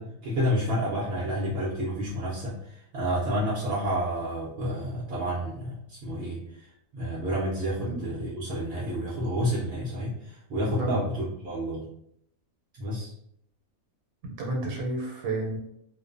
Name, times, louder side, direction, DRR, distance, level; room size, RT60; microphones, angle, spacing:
voice 1, 0.0-11.8 12.8-13.1, equal, 60° right, -7 dB, 0.7 m, -30 dB
voice 2, 14.2-15.6, right 2 dB, 90° right, 0 dB, 1.1 m, -31 dB
2.5 x 2.1 x 2.5 m, 0.74 s
omnidirectional pair, 1.5 m